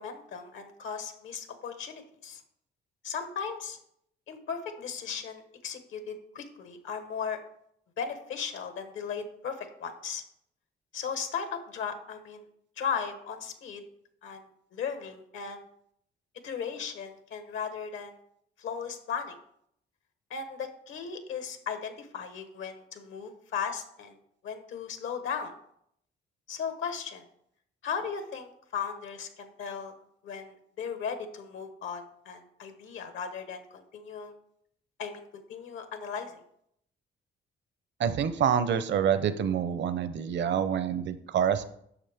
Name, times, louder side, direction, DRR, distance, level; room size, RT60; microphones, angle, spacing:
voice 1, 0.0-2.4 3.0-3.8 4.3-7.4 8.0-10.2 10.9-12.4 12.8-13.8 14.2-15.6 16.4-18.1 18.6-19.4 20.3-24.2 24.4-25.5 26.5-27.2 27.8-30.0 30.2-34.3 35.0-35.2 35.5-36.4, left 6 dB, 80° left, 7 dB, 1.3 m, -36 dB
voice 2, 38.0-41.6, right 8 dB, 65° right, 12 dB, 0.8 m, -27 dB
9.7 x 6.3 x 3.5 m, 0.71 s
cardioid pair, 90°, 20 cm